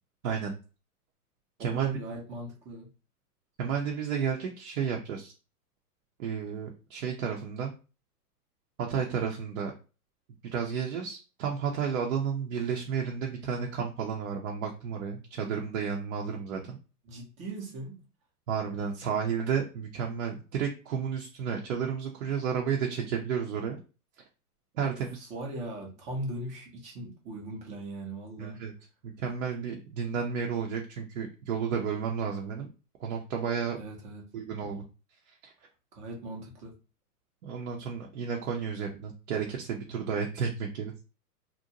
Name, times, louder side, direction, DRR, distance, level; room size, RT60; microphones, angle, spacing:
voice 1, 0.2-0.5 1.6-1.9 3.6-5.3 6.2-7.7 8.9-9.7 10.5-16.8 18.5-23.8 24.8-25.3 28.4-28.7 29.0-32.7 33.0-33.8 34.3-34.8 35.4-35.5 37.4-40.9, right 7 dB, 55° right, 0 dB, 0.6 m, -32 dB
voice 2, 1.6-2.9 17.1-18.0 24.8-25.0 25.3-28.6 33.8-34.3 35.9-36.8, right 1 dB, 15° right, 0 dB, 0.5 m, -39 dB
2.6 x 2.1 x 2.7 m, 0.33 s
hypercardioid pair, 130°, 47 cm